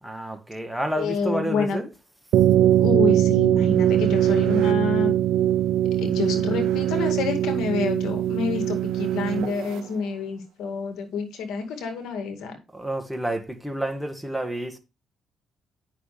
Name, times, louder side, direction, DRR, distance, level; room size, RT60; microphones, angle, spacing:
voice 1, 0.0-1.9 12.7-14.8, right 1 dB, 5° right, 1.5 m, -29 dB
voice 2, 1.0-1.8 2.8-5.2 6.0-12.6, left 5 dB, 85° left, 2.0 m, -28 dB
sound 1, 2.3-9.8, right 12 dB, 85° right, 0.6 m, -21 dB
9.3 x 6.2 x 3.3 m
cardioid pair, 90°, 0 cm